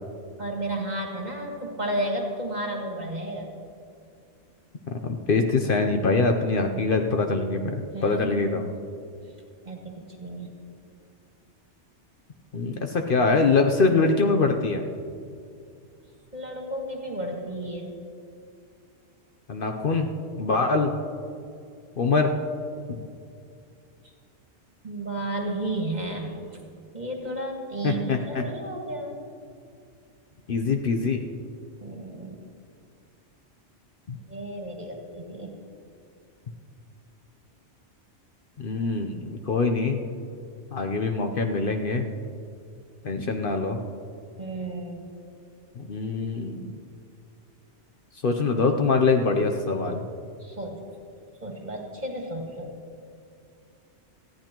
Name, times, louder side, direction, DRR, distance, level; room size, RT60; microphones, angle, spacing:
voice 1, 0.4-3.5 7.9-8.7 9.6-10.5 16.3-17.9 24.8-26.3 26.9-29.1 31.8-32.4 34.3-35.5 44.4-45.1 50.4-50.8 51.4-52.7, right 1 dB, 40° right, 0 dB, 1.8 m, -32 dB
voice 2, 4.9-7.6 8.0-8.7 12.5-14.8 19.5-20.1 20.4-20.9 22.0-22.3 22.9-23.0 27.8-28.4 30.5-31.2 34.1-34.2 38.6-40.0 40.7-42.0 43.0-43.8 45.8-46.8 48.2-50.0, left 4 dB, 55° left, 4 dB, 0.9 m, -24 dB
19.5 x 14.5 x 3.0 m, 2.4 s
omnidirectional pair, 1.2 m